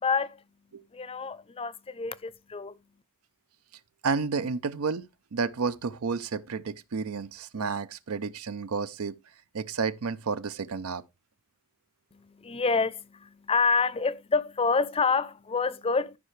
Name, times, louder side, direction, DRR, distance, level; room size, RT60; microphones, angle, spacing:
voice 1, 0.0-0.4 0.9-2.8 12.1-16.2, left 4 dB, 25° left, 0.5 m, -28 dB
voice 2, 4.0-9.2 9.5-11.0, right 5 dB, 90° right, 0.6 m, -31 dB
14.0 x 5.7 x 3.2 m
head